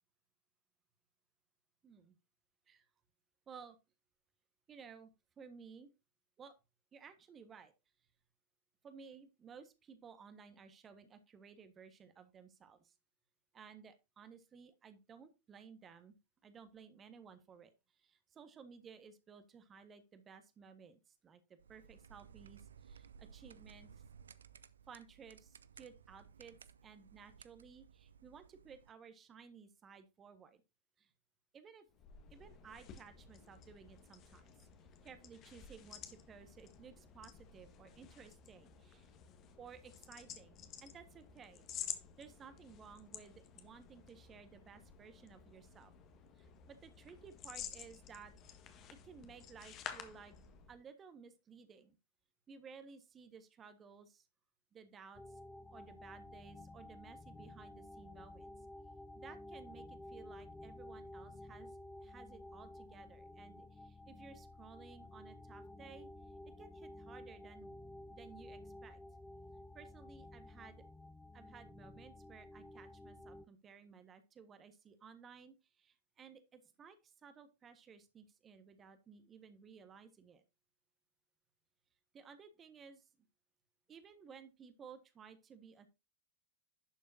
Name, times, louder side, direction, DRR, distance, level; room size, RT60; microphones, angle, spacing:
voice 1, 1.8-2.2 2.7-2.8 3.5-3.8 4.7-5.1 5.4-5.9 6.4-6.6 6.9-7.7 8.8-12.9 13.5-16.1 16.4-23.9 24.9-26.6 26.8-30.6 31.0-31.1 31.5-31.9 32.3-34.5 35.0-39.1 39.6-41.6 42.2-45.9 46.4-48.3 48.9-50.3 50.7-52.0 52.5-54.3 54.7-55.4 55.7-58.5 59.1-66.1 66.6-67.8 68.1-69.0 69.7-70.8 71.3-80.4 82.1-83.1 83.9-85.9, right 6 dB, 25° right, 10 dB, 1.5 m, -57 dB
sound 1, 21.6-28.9, right 7 dB, 70° right, 0.5 m, -59 dB
sound 2, 31.9-50.8, left 8 dB, 35° left, 1.6 m, -52 dB
sound 3, 55.1-73.5, left 1 dB, 5° left, 0.5 m, -53 dB
11.5 x 7.2 x 2.7 m, 0.26 s
figure-of-eight pair, 90°, 0 cm